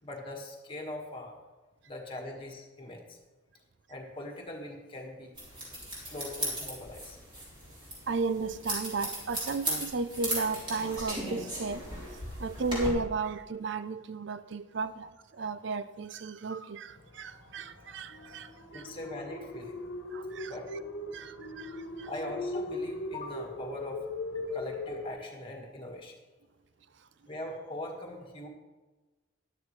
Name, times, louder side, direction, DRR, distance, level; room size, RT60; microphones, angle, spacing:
voice 1, 0.0-1.4 1.9-3.2 3.9-5.3 5.9-7.2 18.7-19.7 20.5-20.7 22.0-24.0 24.3-26.1 27.2-28.5, left 1 dB, 25° left, 1.7 m, -41 dB
sound 1, 5.4-12.9, equal, 25° right, 3.5 m, -37 dB
voice 2, 8.1-18.8 20.1-20.5 21.1-22.1, right 4 dB, 60° right, 0.5 m, -34 dB
sound 2, 16.9-25.1, left 2 dB, 80° left, 1.2 m, -39 dB
13.0 x 10.5 x 3.2 m
head